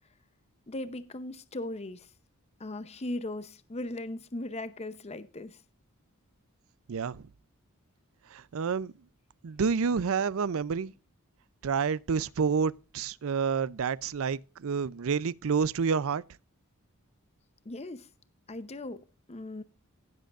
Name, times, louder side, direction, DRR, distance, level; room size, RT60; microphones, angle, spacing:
voice 1, 0.7-2.1 2.6-5.6 17.7-18.1 18.5-19.0 19.3-19.6, left 1 dB, 30° left, 0.7 m, -38 dB
voice 2, 6.9-7.2 8.3-8.9 9.4-10.9 11.6-16.2, right 6 dB, 65° right, 0.5 m, -29 dB
17.0 x 7.7 x 2.4 m
head